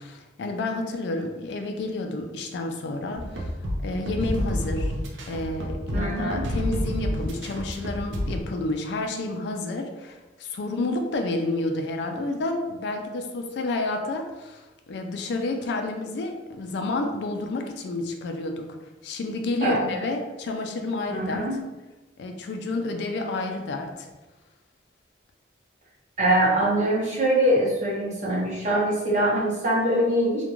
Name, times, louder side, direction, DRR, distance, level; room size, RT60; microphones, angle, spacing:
voice 1, 0.0-3.5 3.8-4.9 5.3-18.8 19.0-21.4 22.2-24.1, left 2 dB, 65° left, 4 dB, 0.3 m, -30 dB
sound 1, 3.1-8.4, equal, 85° right, 0.4 m, -29 dB
voice 2, 5.9-6.4 19.6-19.8 21.1-21.6 26.2-30.4, right 1 dB, 40° right, -5 dB, 0.7 m, -23 dB
2.4 x 2.1 x 2.9 m, 1.1 s
head